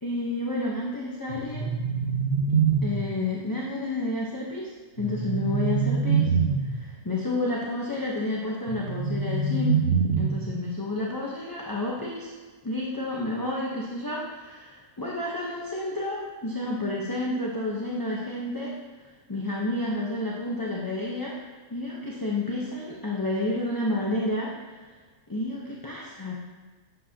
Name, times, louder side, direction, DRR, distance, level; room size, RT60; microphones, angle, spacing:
voice 1, 0.0-1.7 2.8-6.3 6.6-9.8 10.2-12.3 12.6-18.7 19.0-24.9 25.3-26.3, left 2 dB, 20° left, -4 dB, 0.7 m, -30 dB
sound 1, 1.3-3.3 5.0-6.9 8.7-10.6, right 5 dB, 60° right, 1.3 m, -25 dB
11.5 x 7.7 x 2.9 m, 1.4 s
omnidirectional pair, 1.7 m